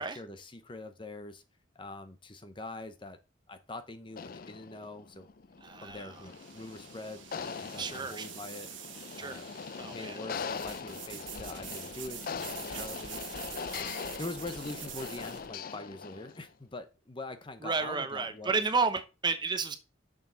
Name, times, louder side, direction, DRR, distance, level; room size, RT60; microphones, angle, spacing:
voice 1, 0.0-1.4 1.7-3.2 3.5-5.3 5.8-7.2 7.5-8.7 9.2-9.5 9.9-13.2 13.7-13.9 14.2-18.6, left 2 dB, 25° left, 0.8 m, -43 dB
sound 1, 4.1-16.5, left 5 dB, 50° left, 0.4 m, -41 dB
sound 2, 5.1-15.5, right 9 dB, 85° right, 1.2 m, -46 dB
voice 2, 5.6-6.2 7.8-8.3 9.2-9.4 9.8-10.2 17.6-19.8, right 4 dB, 25° right, 0.6 m, -32 dB
6.8 x 6.3 x 3.9 m
head